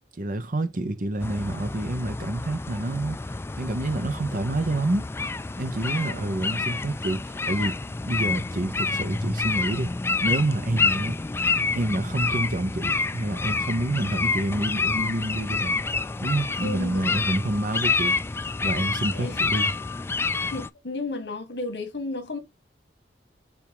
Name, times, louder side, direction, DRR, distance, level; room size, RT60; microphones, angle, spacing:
voice 1, 0.2-3.2 3.6-5.1 5.6-7.8 8.0-9.9 10.2-11.1 11.7-15.8 16.2-18.2 18.6-19.7, right 1 dB, 50° right, 0.9 m, -28 dB
sound 1, 1.2-20.7, left 3 dB, 15° left, 0.3 m, -28 dB
voice 2, 5.8-6.3 16.6-17.2 17.8-17.9 19.1-19.5 20.5-22.4, left 3 dB, 70° left, 1.9 m, -34 dB
7.0 x 2.8 x 4.8 m
head